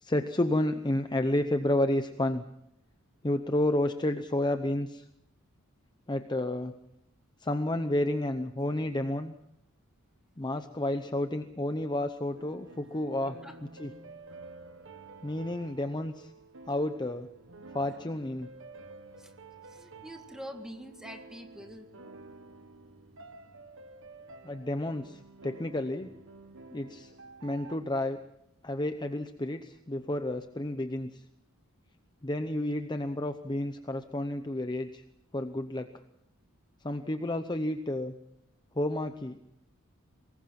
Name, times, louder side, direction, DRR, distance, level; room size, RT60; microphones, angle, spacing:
voice 1, 0.0-2.4 3.2-5.1 6.1-6.7 7.4-9.3 10.4-14.0 15.2-16.3 16.7-17.3 17.7-18.5 24.4-26.1 26.7-27.1 27.4-28.2 28.6-31.2 32.2-35.0 35.3-35.9 36.8-38.1 38.7-39.4, left 1 dB, 20° left, 8 dB, 0.8 m, -31 dB
sound 1, 12.4-27.8, right 3 dB, 60° right, 1.3 m, -50 dB
voice 2, 13.3-13.6 19.2-19.3 19.6-22.0, equal, 5° right, 4 dB, 2.0 m, -45 dB
23.5 x 20.0 x 5.9 m, 0.78 s
head